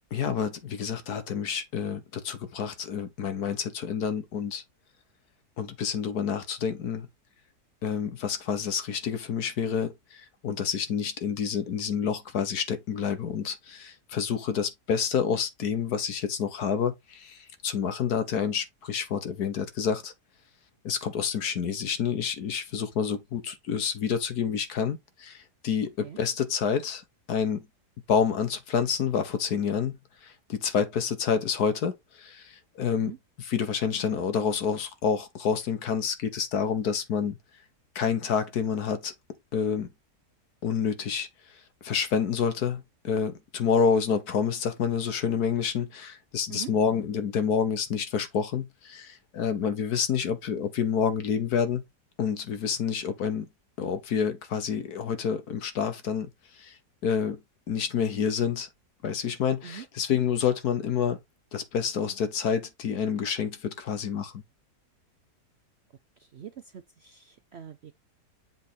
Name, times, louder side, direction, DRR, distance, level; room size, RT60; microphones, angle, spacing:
voice 1, 0.1-4.6 5.6-7.1 7.8-20.1 20.8-27.0 27.3-27.7 28.1-29.9 30.2-37.4 37.9-39.1 39.5-39.9 40.6-41.3 41.8-51.8 52.2-53.5 53.8-56.3 56.6-56.8 57.0-57.4 57.7-58.7 59.0-61.2 61.5-64.4, left 7 dB, 70° left, 1.6 m, -28 dB
voice 2, 66.2-67.9, right 9 dB, 65° right, 0.6 m, -43 dB
7.5 x 3.5 x 4.2 m
omnidirectional pair, 1.8 m